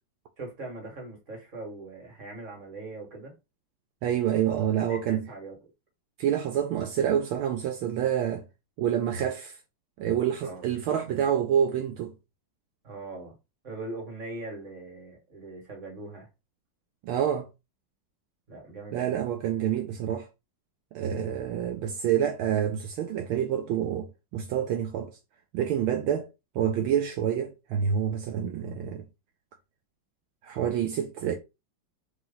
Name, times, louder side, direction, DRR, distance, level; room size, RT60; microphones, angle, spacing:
voice 1, 0.4-3.3 4.5-5.6 10.4-10.7 12.8-13.3 13.6-16.3 18.5-19.2, right 2 dB, 35° right, 2.1 m, -41 dB
voice 2, 4.0-5.2 6.2-8.4 8.8-9.5 10.0-12.1 17.0-17.5 18.9-20.3 20.9-25.1 25.5-26.3 26.5-29.0 30.4-31.3, right 9 dB, 80° right, 1.4 m, -27 dB
3.9 x 3.1 x 3.9 m
omnidirectional pair, 2.3 m